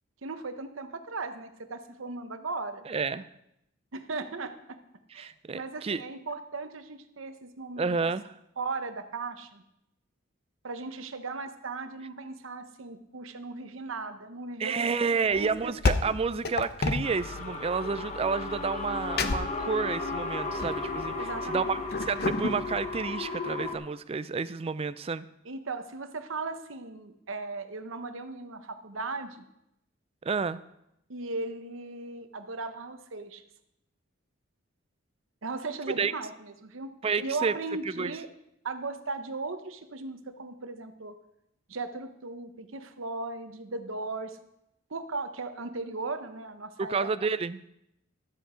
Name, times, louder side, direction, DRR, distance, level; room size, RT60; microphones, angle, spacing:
voice 1, 0.2-2.8 3.9-4.8 5.1-7.9 8.6-9.6 10.6-15.7 21.2-21.8 25.4-29.4 31.1-33.4 35.4-36.9 37.2-38.3 38.6-41.1 41.7-44.4 44.9-47.1, right 3 dB, 70° right, 9 dB, 0.9 m, -37 dB
voice 2, 2.9-3.3 5.2-6.0 7.8-8.3 14.6-21.8 22.1-25.3 30.2-30.6 36.0-36.1 37.0-37.6 38.0-38.1 46.8-47.6, right 5 dB, 30° right, 15 dB, 0.4 m, -30 dB
sound 1, 15.3-23.1, left 3 dB, 50° left, 0.7 m, -33 dB
Trippy Dippy Fx, 17.0-23.8, left 3 dB, 35° left, 1.2 m, -35 dB
12.5 x 8.0 x 5.0 m, 0.82 s
head